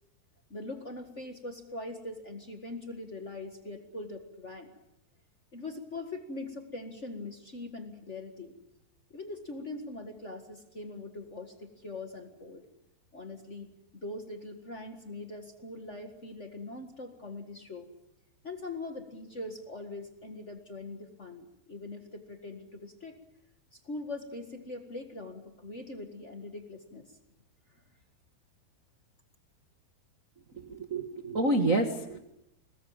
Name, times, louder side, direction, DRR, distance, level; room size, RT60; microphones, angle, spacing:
voice 1, 0.5-4.7 5.5-8.5 9.1-12.6 13.1-17.9 18.4-23.2 23.7-27.0, left 2 dB, 50° left, 5 dB, 0.8 m, -42 dB
voice 2, 30.5-32.2, right 2 dB, 65° right, 4 dB, 0.7 m, -28 dB
24.5 x 20.0 x 8.8 m, 0.85 s
omnidirectional pair, 4.4 m